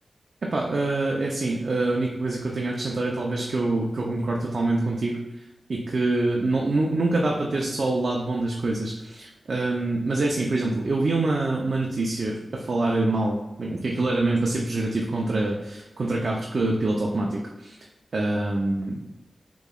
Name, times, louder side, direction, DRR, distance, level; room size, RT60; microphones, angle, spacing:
voice 1, 0.4-5.2 5.7-17.8 18.1-19.0, right 2 dB, 65° right, -1 dB, 0.6 m, -25 dB
6.5 x 3.0 x 2.3 m, 1.0 s
cardioid pair, 45°, 0 cm